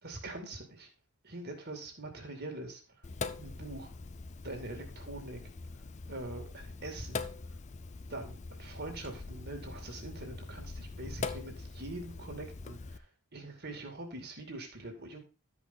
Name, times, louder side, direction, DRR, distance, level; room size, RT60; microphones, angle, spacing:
voice 1, 0.0-0.9 1.2-2.8 3.4-3.9 4.4-5.4 6.1-7.5 8.1-13.1 13.3-15.2, right 2 dB, 45° right, 3 dB, 2.4 m, -43 dB
Sink (filling or washing), 3.0-13.0, left 4 dB, 30° left, 0.5 m, -43 dB
12.5 x 5.3 x 4.0 m, 0.32 s
head